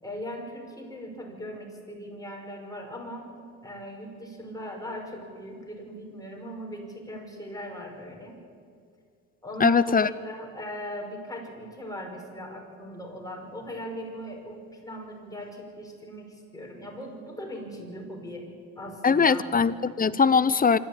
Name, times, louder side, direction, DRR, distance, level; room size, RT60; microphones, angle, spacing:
voice 1, 0.0-3.3 3.6-8.4 9.4-18.5 18.8-19.4, equal, 10° left, 1 dB, 5.4 m, -39 dB
voice 2, 9.6-10.1 19.0-20.8, left 5 dB, 30° left, 16 dB, 0.8 m, -21 dB
25.5 x 13.5 x 8.8 m, 2.3 s
cardioid pair, 90°, 30 cm